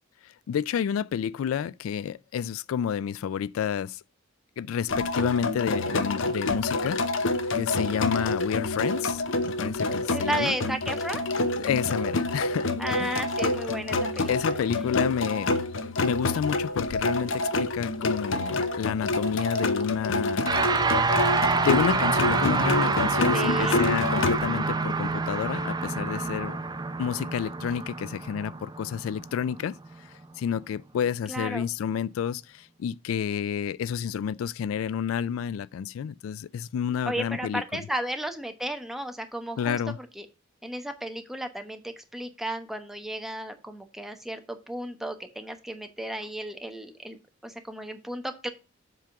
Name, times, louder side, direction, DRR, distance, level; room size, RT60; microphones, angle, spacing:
voice 1, 0.2-4.0 4.6-7.0 7.5-10.6 11.6-12.7 13.0-13.2 14.3-15.5 16.0-20.5 21.5-26.6 27.0-29.8 30.0-37.6 39.6-40.0, left 8 dB, 85° left, 0.3 m, -30 dB
sound 1, 4.9-24.4, left 2 dB, 70° left, 0.8 m, -28 dB
voice 2, 7.9-8.3 10.1-11.2 12.8-14.5 23.3-23.8 31.3-31.7 37.1-39.8 40.2-40.3 40.6-48.5, right 1 dB, ahead, 0.9 m, -34 dB
sound 2, 20.4-29.9, right 4 dB, 20° right, 0.6 m, -27 dB
7.6 x 3.6 x 5.7 m
head